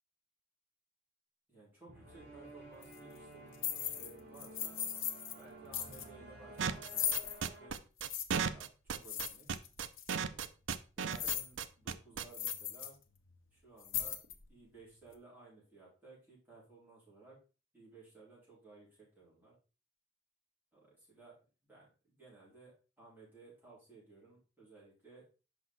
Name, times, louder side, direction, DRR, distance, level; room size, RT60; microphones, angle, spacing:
voice 1, 1.5-4.8 5.3-7.8 8.5-9.5 10.1-10.5 11.0-12.9 13.5-14.2 14.5-17.4 17.7-19.5 20.7-21.4 21.6-25.2, right 3 dB, 10° right, -7 dB, 4.2 m, -58 dB
sound 1, 1.9-7.7, right 1 dB, 50° right, 2.9 m, -53 dB
sound 2, 2.8-3.0 3.5-4.1 4.4-5.4 5.7-6.0 6.8-7.4 8.0-8.2 9.0-9.7 10.0-10.1 11.0-11.5 11.9-12.0 12.3-12.9 13.2-13.3 13.8-14.5, left 9 dB, 90° left, 0.8 m, -38 dB
sound 3, 6.6-12.5, right 6 dB, 70° right, 0.5 m, -35 dB
6.0 x 5.1 x 4.0 m, 0.34 s
head